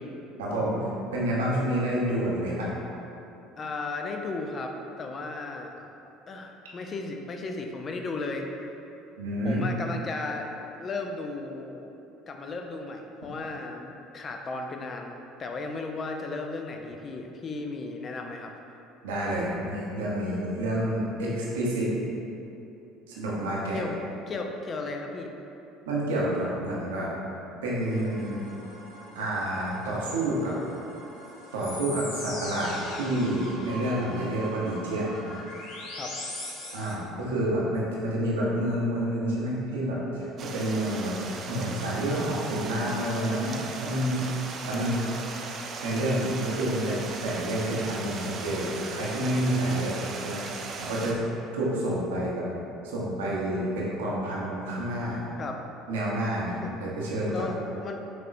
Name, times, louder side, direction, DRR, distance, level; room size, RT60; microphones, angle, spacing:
voice 1, 0.4-0.8 1.1-2.7 9.2-9.6 19.0-21.9 23.1-23.8 25.9-27.1 27.6-28.4 29.1-30.5 31.5-35.1 36.7-41.1 41.5-44.2 44.6-45.0 45.8-49.9 50.2-50.4 50.8-51.2 51.5-52.4 52.8-55.2 55.9-57.4, right 1 dB, 85° right, -6 dB, 0.9 m, -28 dB
voice 2, 3.6-5.7 6.3-8.5 9.4-11.9 12.3-18.5 23.7-24.0 24.3-25.3 36.0-36.1 55.4-55.6 56.6-56.7 57.3-57.6 57.8-58.0, left 3 dB, 40° left, 3 dB, 0.5 m, -35 dB
broken pad, 27.8-36.9, left 1 dB, 70° left, 0.9 m, -41 dB
Stream, 40.4-51.1, right 4 dB, 45° right, 0.4 m, -38 dB
6.0 x 2.9 x 2.5 m, 2.8 s
hypercardioid pair, 75°, 0 cm